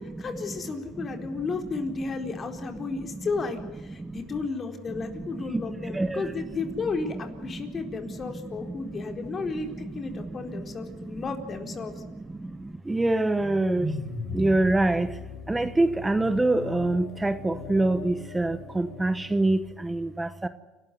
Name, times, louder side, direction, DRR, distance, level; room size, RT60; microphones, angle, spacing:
voice 1, 0.2-11.9, left 4 dB, 35° left, 4 dB, 4.3 m, -33 dB
voice 2, 12.9-13.9 14.3-15.1 15.5-20.5, right 2 dB, 10° right, 12 dB, 1.0 m, -24 dB
sound 1, 13.1-19.4, left 3 dB, 75° left, 4.0 m, -38 dB
29.5 x 13.0 x 9.6 m, 1.2 s
supercardioid pair, 100°, 0 cm